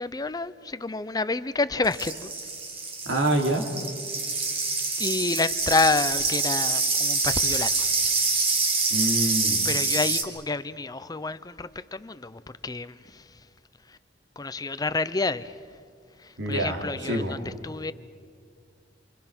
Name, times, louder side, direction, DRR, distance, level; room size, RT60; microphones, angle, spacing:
voice 1, 0.0-2.3 5.0-7.9 9.6-13.2 14.4-15.5 16.2-17.9, left 3 dB, 20° left, 0.6 m, -29 dB
sound 1, 1.8-10.2, right 4 dB, 30° right, 2.1 m, -26 dB
voice 2, 3.0-3.6 8.9-9.7 16.4-17.4, right 1 dB, 85° right, 2.8 m, -26 dB
28.0 x 24.5 x 6.1 m
head